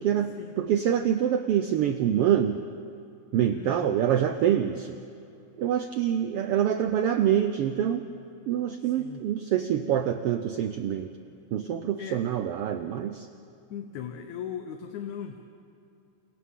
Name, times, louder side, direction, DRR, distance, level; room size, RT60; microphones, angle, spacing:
voice 1, 0.0-2.6 3.3-5.0 5.6-8.1 8.5-11.1 11.5-13.3, right 10 dB, 80° right, 8 dB, 1.3 m, -26 dB
voice 2, 3.5-4.0 8.8-9.2 12.0-12.2 13.7-15.4, left 8 dB, 80° left, 5 dB, 2.3 m, -38 dB
28.5 x 28.5 x 3.7 m, 2.7 s
omnidirectional pair, 3.4 m